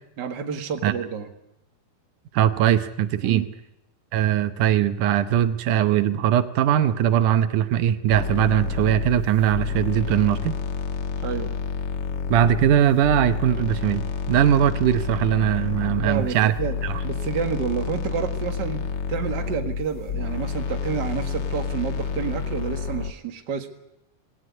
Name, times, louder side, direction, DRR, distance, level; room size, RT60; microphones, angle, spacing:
voice 1, 0.2-1.3 3.2-3.5 11.2-11.5 15.9-16.7 17.0-18.8 19.1-23.7, right 7 dB, 40° right, 5 dB, 1.9 m, -29 dB
voice 2, 2.3-3.4 4.1-10.6 12.3-16.5 16.8-17.0, right 10 dB, 80° right, 11 dB, 2.4 m, -20 dB
sound 1, 8.1-23.1, left 6 dB, 50° left, 1.4 m, -29 dB
19.0 x 17.5 x 9.6 m, 0.87 s
omnidirectional pair, 3.6 m